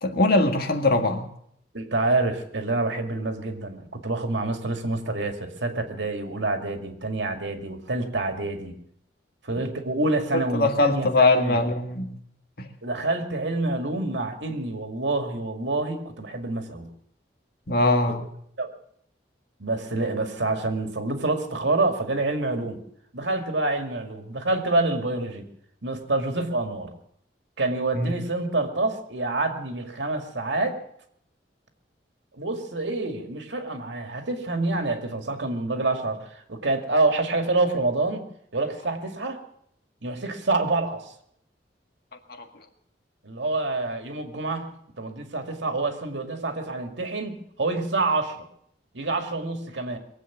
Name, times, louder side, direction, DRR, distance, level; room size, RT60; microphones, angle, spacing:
voice 1, 0.0-1.3 10.5-12.1 12.6-12.7 17.7-18.2 27.9-28.1 42.3-42.5, left 2 dB, 55° left, 5 dB, 1.8 m, -22 dB
voice 2, 1.7-8.7 9.4-11.6 12.8-16.9 18.1-18.2 18.6-18.7 19.6-22.8 23.1-25.5 25.8-26.9 27.6-30.8 32.3-38.2 38.5-39.4 40.0-41.1 43.2-44.7 45.0-48.4 48.9-50.0, right 2 dB, 75° right, 5 dB, 2.2 m, -27 dB
22.0 x 8.2 x 7.3 m, 0.70 s
head